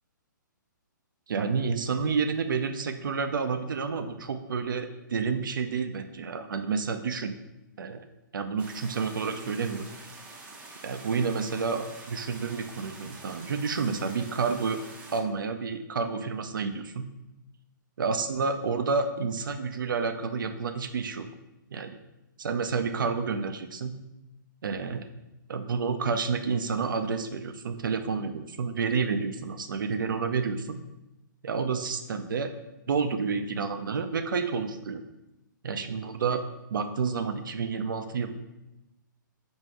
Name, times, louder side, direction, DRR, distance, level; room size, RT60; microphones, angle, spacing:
voice 1, 1.3-7.3 7.8-8.0 8.3-9.9 10.8-14.8 15.1-17.1 18.0-21.3 21.7-21.9 22.4-23.9 24.6-25.1 25.5-30.8 31.4-32.5 32.9-35.0 35.6-36.4 36.7-38.3, right 5 dB, 75° right, 8 dB, 0.5 m, -29 dB
sound 1, 8.6-15.2, right 3 dB, 10° right, 0.4 m, -46 dB
4.1 x 2.7 x 4.7 m, 0.95 s
hypercardioid pair, 145°, 11 cm